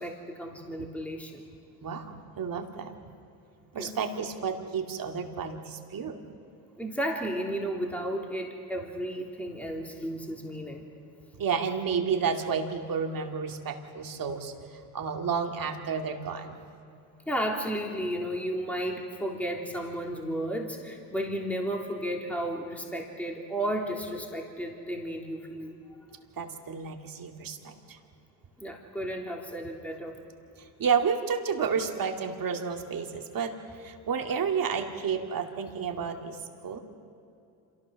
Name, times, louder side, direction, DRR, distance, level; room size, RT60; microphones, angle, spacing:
voice 1, 0.0-1.4 3.8-3.9 6.8-10.9 17.3-25.7 28.6-30.1, equal, 5° left, 0 dB, 3.3 m, -33 dB
voice 2, 1.8-3.0 3.7-6.2 11.3-16.6 26.4-28.0 30.6-36.8, right 6 dB, 45° right, 3 dB, 2.5 m, -31 dB
27.0 x 15.0 x 6.5 m, 2.7 s
hypercardioid pair, 70°, 47 cm